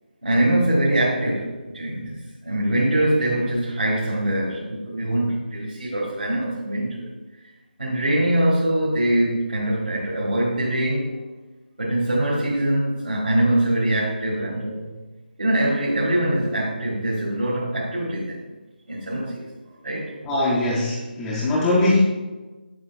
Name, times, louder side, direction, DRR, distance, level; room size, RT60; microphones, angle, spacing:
voice 1, 0.2-7.1 7.8-11.1 11.8-14.9 15.4-18.5 18.9-19.5 19.8-20.1, right 1 dB, 85° right, -7 dB, 1.7 m, -23 dB
voice 2, 20.2-22.0, left 2 dB, 5° left, -6 dB, 0.4 m, -21 dB
7.3 x 7.3 x 2.3 m, 1.2 s
figure-of-eight pair, 165°, 5 cm